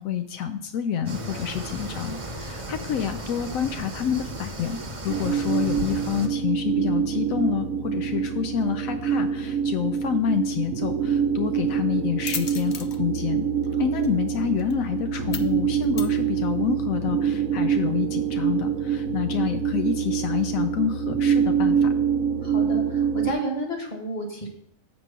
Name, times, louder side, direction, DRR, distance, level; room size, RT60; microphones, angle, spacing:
voice 1, 0.0-4.8 5.0-13.5 13.8-21.9, left 9 dB, 80° left, 7 dB, 1.0 m, -28 dB
sound 1, 1.0-6.3, right 1 dB, 25° right, 0.9 m, -35 dB
sound 2, 5.1-23.3, right 7 dB, 75° right, 1.1 m, -25 dB
sound 3, 10.4-16.8, left 7 dB, 55° left, 0.5 m, -41 dB
voice 2, 22.4-24.5, right 1 dB, 35° left, 2 dB, 1.6 m, -31 dB
7.7 x 4.6 x 5.5 m, 0.69 s
omnidirectional pair, 1.4 m